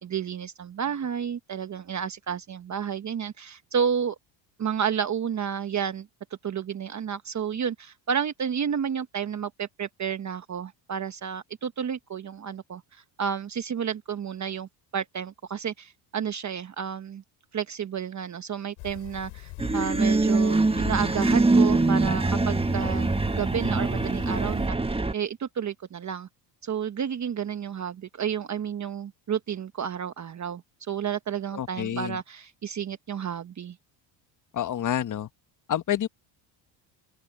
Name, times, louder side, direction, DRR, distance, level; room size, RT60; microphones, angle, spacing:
voice 1, 0.0-4.1 4.6-6.1 6.4-17.2 17.5-24.8 25.1-26.3 26.6-33.8, right 8 dB, 35° right, 1.2 m, -31 dB
sound 1, 18.8-24.7, left 25 dB, 85° left, 6.1 m, -43 dB
sound 2, 19.6-25.1, right 3 dB, 10° right, 1.4 m, -23 dB
voice 2, 31.5-32.2 34.5-35.3 35.7-36.1, left 10 dB, 40° left, 1.2 m, -28 dB
open air
supercardioid pair, 95°, 49 cm